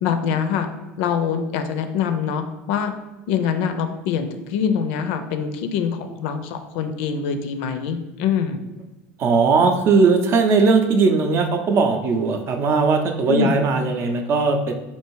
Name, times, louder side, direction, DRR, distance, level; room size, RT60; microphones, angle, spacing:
voice 1, 0.0-0.7 1.0-2.9 3.3-8.6 13.3-13.7, left 7 dB, 75° left, 8 dB, 0.5 m, -24 dB
voice 2, 9.2-14.7, right 4 dB, 45° right, 5 dB, 0.6 m, -18 dB
3.3 x 2.7 x 4.6 m, 1.1 s
supercardioid pair, 120°, 6 cm